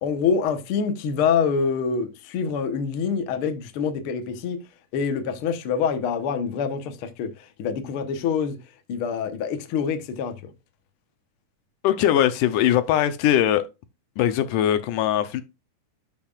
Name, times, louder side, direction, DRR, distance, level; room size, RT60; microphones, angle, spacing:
voice 1, 0.0-4.6 4.9-7.3 7.6-8.6 8.9-10.5, left 6 dB, 60° left, 1.5 m, -25 dB
voice 2, 11.8-13.6 14.2-15.4, left 11 dB, 80° left, 2.3 m, -21 dB
12.5 x 6.0 x 2.4 m
omnidirectional pair, 3.7 m